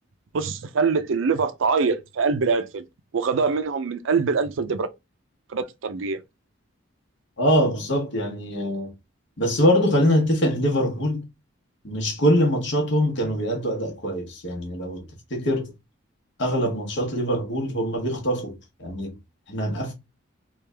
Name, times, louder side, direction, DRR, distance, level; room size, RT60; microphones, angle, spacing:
voice 1, 0.3-2.8 3.1-4.9 5.5-6.2, right 5 dB, 70° right, 0.4 m, -24 dB
voice 2, 7.4-8.9 9.4-11.2 11.8-15.7 16.4-19.2 19.5-19.9, equal, 60° left, 1.1 m, -23 dB
3.3 x 2.4 x 3.3 m
head